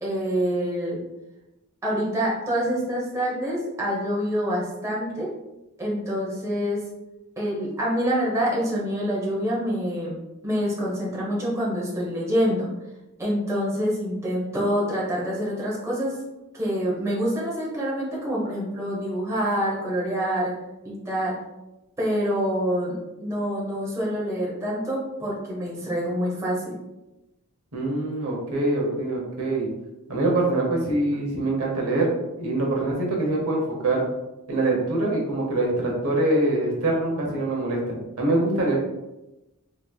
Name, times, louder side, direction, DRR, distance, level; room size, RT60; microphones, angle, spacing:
voice 1, 0.0-1.0 1.8-5.3 5.8-6.8 7.4-12.7 13.2-16.1 16.5-20.5 20.8-21.3 22.0-26.7, equal, 15° right, -5 dB, 0.7 m, -26 dB
voice 2, 27.7-29.7 30.1-34.1 34.5-38.8, right 2 dB, 65° right, -2 dB, 0.9 m, -24 dB
3.4 x 3.0 x 2.3 m, 0.97 s
head